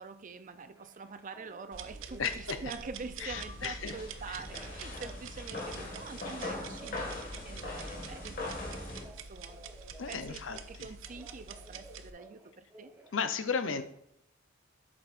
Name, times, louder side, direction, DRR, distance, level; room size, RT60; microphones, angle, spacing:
voice 1, 0.0-10.4 10.7-12.9, right 4 dB, 40° right, 11 dB, 0.5 m, -46 dB
Telephone, 0.7-3.3 3.6-5.1 5.5-7.0 7.3-10.8 11.1-13.2, right 2 dB, 15° right, 0.9 m, -54 dB
sound 1, 1.7-12.1, right 5 dB, 80° right, 0.6 m, -47 dB
voice 2, 2.2-2.6 3.2-4.0 4.3-4.4 10.0-10.9 13.1-13.8, left 6 dB, 70° left, 9 dB, 0.7 m, -34 dB
sound 2, 3.3-9.0, left 2 dB, 50° left, 2.0 m, -41 dB
8.1 x 7.6 x 2.5 m, 0.77 s
head